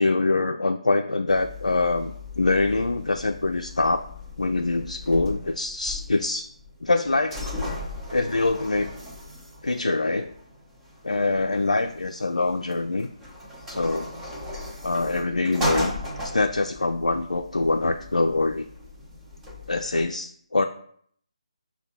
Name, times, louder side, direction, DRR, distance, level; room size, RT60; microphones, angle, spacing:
voice 1, 0.0-4.0 4.4-6.4 6.8-7.5 8.1-8.9 9.6-10.3 11.0-13.1 13.7-14.1 14.8-15.9 16.2-18.6 19.7-20.6, left 2 dB, 75° left, 5 dB, 0.3 m, -24 dB
sound 1, 1.3-20.1, left 1 dB, 10° right, 0.7 m, -37 dB
5.5 x 2.2 x 4.2 m, 0.62 s
figure-of-eight pair, 150°, 4 cm